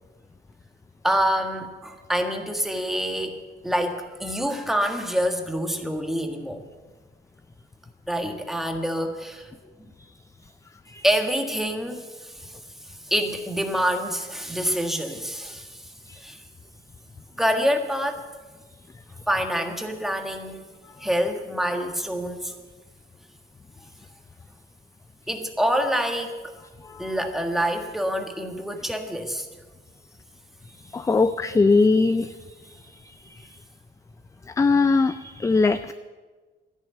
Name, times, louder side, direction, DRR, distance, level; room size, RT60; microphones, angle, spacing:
voice 1, 1.0-6.6 8.1-9.5 9.8-9.9 11.0-12.5 13.1-15.9 16.2-16.4 17.4-18.2 19.3-20.7 21.0-22.5 25.3-26.4 27.0-29.5, equal, ahead, 4 dB, 1.5 m, -26 dB
voice 2, 30.9-32.3 34.6-35.9, left 3 dB, 15° left, 12 dB, 0.4 m, -20 dB
13.5 x 11.0 x 8.1 m, 1.3 s
cardioid pair, 140°, 19 cm